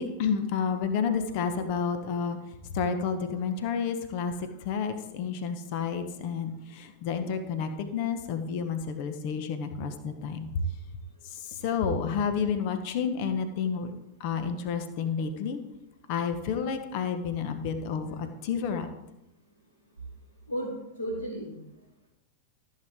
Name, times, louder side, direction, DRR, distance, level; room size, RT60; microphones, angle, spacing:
voice 1, 0.0-2.4 2.7-4.3 4.6-10.5 11.3-13.9 14.2-15.6 16.1-18.9, left 6 dB, 45° left, 8 dB, 1.2 m, -30 dB
voice 2, 20.5-22.1, equal, 80° left, -7 dB, 4.1 m, -36 dB
14.5 x 7.8 x 3.7 m, 0.90 s
figure-of-eight pair, 90°, 0 cm